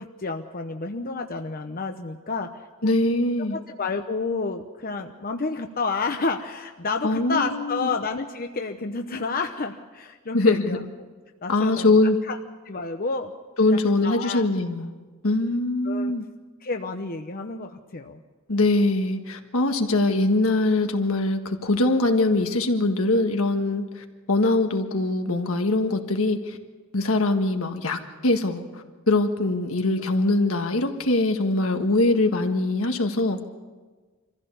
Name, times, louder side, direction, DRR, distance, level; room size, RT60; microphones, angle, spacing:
voice 1, 0.0-2.5 2.8-2.9 3.4-10.8 11.4-12.0 12.3-12.4 12.6-13.3 13.7-14.5 15.8-16.1 16.6-18.2, left 4 dB, 45° left, 5 dB, 0.9 m, -30 dB
voice 2, 2.8-3.6 7.0-7.9 10.3-10.8 11.5-12.2 13.6-14.9 15.2-16.2 18.5-26.6 26.9-33.4, left 2 dB, 80° left, 5 dB, 1.7 m, -22 dB
25.0 x 15.0 x 7.0 m, 1.3 s
head